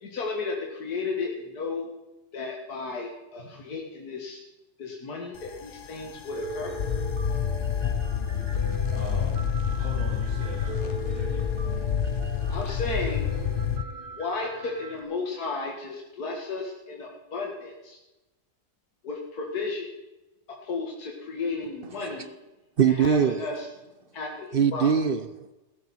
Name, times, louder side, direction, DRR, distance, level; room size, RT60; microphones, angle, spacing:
voice 1, 0.0-1.9 2.3-4.4 4.8-6.7 12.5-13.3 14.2-18.0 19.0-19.9 20.6-22.3 22.9-23.7 24.1-24.9, left 3 dB, 75° left, 0 dB, 2.4 m, -33 dB
sound 1, 5.4-13.8, left 8 dB, 55° left, 0.6 m, -28 dB
Piano, 6.3-15.0, right 2 dB, 80° right, 2.2 m, -40 dB
voice 2, 8.5-9.5 9.8-11.4, right 1 dB, 45° right, -6 dB, 4.7 m, -42 dB
voice 3, 22.8-23.5 24.5-25.5, right 7 dB, 65° right, 12 dB, 0.5 m, -22 dB
15.5 x 13.0 x 4.3 m, 1.0 s
omnidirectional pair, 1.7 m